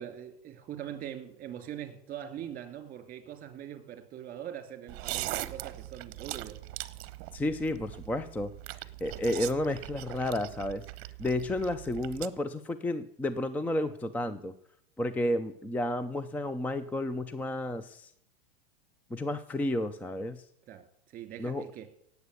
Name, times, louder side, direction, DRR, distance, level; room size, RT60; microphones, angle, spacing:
voice 1, 0.0-6.6 20.7-21.9, right 10 dB, 25° right, 9 dB, 2.9 m, -42 dB
sound 1, 4.9-12.3, right 17 dB, 45° right, 1.1 m, -40 dB
voice 2, 7.3-8.5 9.0-10.8 11.2-14.5 15.0-18.1 19.1-20.4 21.4-21.7, left 1 dB, 5° left, 12 dB, 0.5 m, -31 dB
18.0 x 8.1 x 8.2 m, 0.77 s
hypercardioid pair, 125°, 32 cm